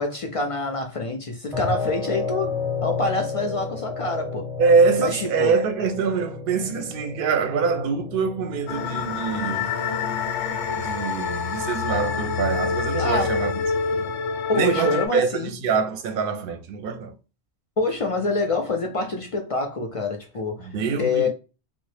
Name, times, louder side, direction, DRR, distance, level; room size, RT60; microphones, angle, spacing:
voice 1, 0.0-2.5 2.8-4.5 5.0-5.5 13.0-13.4 14.5-15.6 17.8-20.7 21.0-21.3, left 2 dB, 55° left, 0.3 m, -26 dB
sound 1, 1.5-14.5, left 5 dB, ahead, 0.5 m, -33 dB
voice 2, 4.6-9.7 10.7-13.6 13.9-14.1 14.5-17.1 20.6-21.3, right 5 dB, 65° right, 0.7 m, -24 dB
sound 2, 8.7-15.1, left 5 dB, 90° left, 0.9 m, -27 dB
3.1 x 2.0 x 3.2 m
omnidirectional pair, 1.1 m